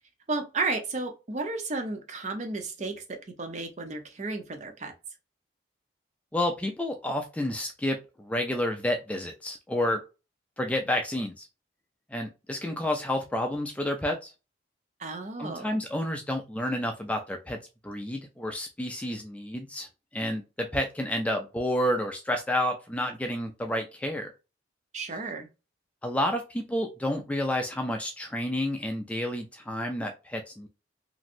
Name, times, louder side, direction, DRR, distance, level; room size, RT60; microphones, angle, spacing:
voice 1, 0.3-4.9 15.0-15.8 24.9-25.5, right 3 dB, 40° right, 0.6 m, -33 dB
voice 2, 6.3-10.0 10.6-11.5 12.1-14.3 15.4-17.6 17.8-19.9 20.1-24.3 26.0-30.7, left 1 dB, 5° left, 0.3 m, -30 dB
3.0 x 2.6 x 2.5 m
head